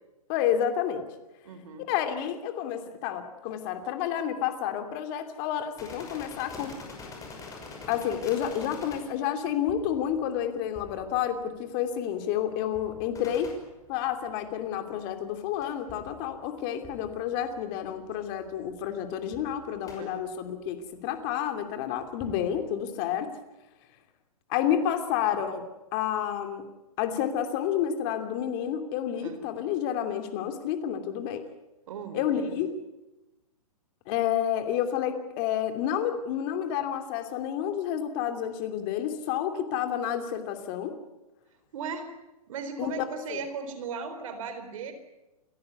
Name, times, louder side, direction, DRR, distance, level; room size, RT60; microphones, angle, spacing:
voice 1, 0.3-1.1 1.9-6.8 7.9-13.5 13.9-23.3 24.5-26.6 27.0-31.4 32.1-32.7 34.1-41.0 42.8-43.4, left 9 dB, 35° left, 7 dB, 2.9 m, -30 dB
voice 2, 1.4-1.9 20.0-20.3 29.2-29.4 31.9-32.6 41.7-42.1 42.5-44.9, right 5 dB, 60° right, 9 dB, 4.0 m, -37 dB
sound 1, 5.8-14.7 15.6-18.0 18.2-18.3 18.6-18.9 19.3-20.0 21.2-21.4 22.0-22.6, left 3 dB, 15° left, 6.0 m, -46 dB
28.5 x 15.0 x 9.5 m, 1.0 s
hypercardioid pair, 140°, 19 cm